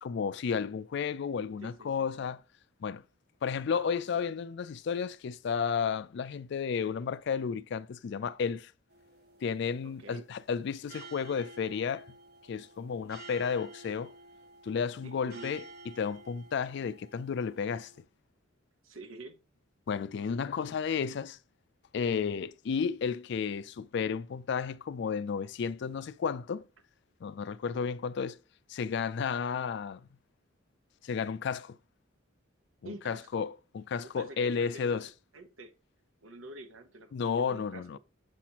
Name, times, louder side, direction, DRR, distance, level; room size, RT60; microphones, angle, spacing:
voice 1, 0.0-2.4 2.8-3.0 3.4-8.7 9.4-12.1 12.5-14.1 14.6-17.9 19.9-21.4 21.9-26.7 27.2-28.4 28.7-30.0 31.0-31.8 32.8-35.1 37.1-38.0, left 6 dB, 60° left, 0.3 m, -32 dB
voice 2, 1.6-2.1 9.8-10.3 15.0-15.6 18.8-19.4 32.8-33.5 34.0-35.0 35.3-35.7 36.2-38.0, right 2 dB, 80° right, 1.1 m, -47 dB
sound 1, 8.9-18.0, right 2 dB, 50° right, 1.3 m, -52 dB
7.0 x 5.8 x 2.9 m
head